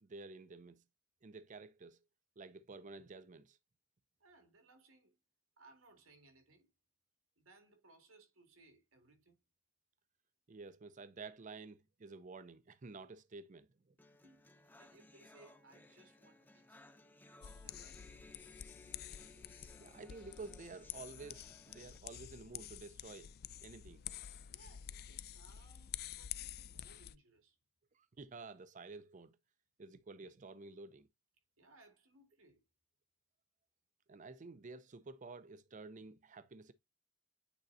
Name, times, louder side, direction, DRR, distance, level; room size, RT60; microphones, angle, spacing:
voice 1, 0.0-0.8 1.2-2.0 2.4-3.6 10.5-13.9 19.8-23.3 23.6-24.0 27.9-29.4 29.8-31.1 34.1-36.7, right 3 dB, 35° right, 0.5 m, -51 dB
voice 2, 4.2-5.2 5.6-6.7 7.4-9.4 14.2-16.8 17.6-18.3 24.5-27.6 31.6-32.6, right 2 dB, 85° right, 2.1 m, -65 dB
sound 1, 14.0-22.0, left 2 dB, 10° left, 0.7 m, -61 dB
sound 2, 17.4-27.1, left 11 dB, 50° left, 0.4 m, -49 dB
9.0 x 4.3 x 2.6 m
head